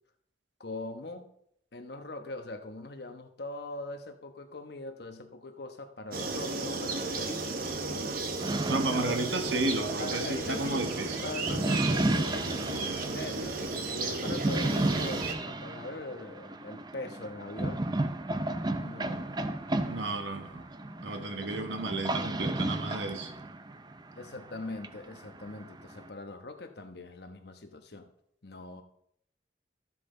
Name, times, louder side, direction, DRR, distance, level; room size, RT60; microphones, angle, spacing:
voice 1, 0.6-1.3 1.7-7.6 8.9-9.2 10.0-10.9 11.2-17.9 18.8-19.4 24.2-28.1 28.4-28.8, left 2 dB, 60° left, 6 dB, 1.1 m, -41 dB
sound 1, 6.1-15.3, right 3 dB, 50° right, 1.2 m, -34 dB
sound 2, 8.4-26.1, right 2 dB, 25° right, 0.5 m, -34 dB
voice 2, 8.7-11.2 19.8-20.7 21.0-23.3, right 2 dB, 80° right, 6 dB, 1.3 m, -32 dB
13.5 x 7.6 x 3.8 m, 0.72 s
head